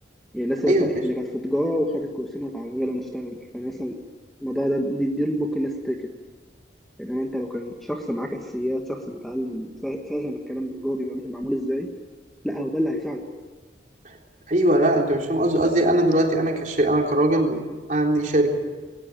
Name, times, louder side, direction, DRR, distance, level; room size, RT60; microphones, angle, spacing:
voice 1, 0.3-4.0 4.4-6.0 7.0-11.9 12.4-13.2, equal, ahead, 2 dB, 1.4 m, -27 dB
voice 2, 14.5-17.6 17.9-18.6, right 1 dB, 40° right, 1 dB, 3.8 m, -20 dB
21.0 x 19.0 x 9.1 m, 1.3 s
head